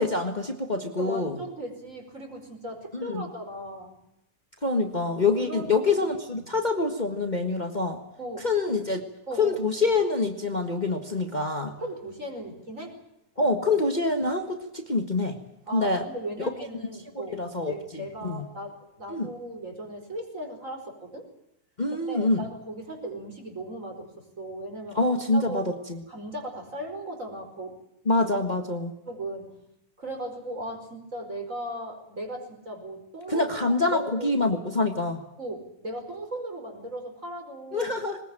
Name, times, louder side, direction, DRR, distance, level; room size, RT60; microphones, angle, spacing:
voice 1, 0.0-1.4 2.9-3.2 4.6-8.0 8.4-9.0 9.4-11.7 13.4-15.4 15.7-16.0 16.4-16.5 17.4-18.4 19.1-19.3 21.8-22.4 24.9-26.0 28.0-28.9 33.3-35.2 37.7-38.2, left 3 dB, 70° left, 5 dB, 0.4 m, -26 dB
voice 2, 1.0-4.0 5.4-5.9 6.3-6.5 8.2-8.8 9.3-9.8 11.7-13.0 15.7-17.4 17.7-21.3 22.1-25.6 26.1-27.8 29.1-29.6 30.0-34.6 35.4-37.9, right 1 dB, 20° right, 4 dB, 5.2 m, -37 dB
22.0 x 20.5 x 9.0 m, 0.83 s
omnidirectional pair, 3.9 m